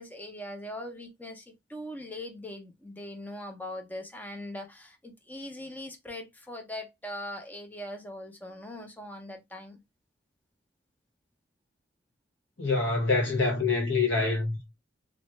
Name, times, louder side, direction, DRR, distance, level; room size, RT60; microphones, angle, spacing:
voice 1, 0.0-9.8, left 1 dB, 10° left, 0.6 m, -41 dB
voice 2, 12.6-14.7, left 3 dB, 80° left, 1.0 m, -26 dB
2.4 x 2.1 x 3.0 m
head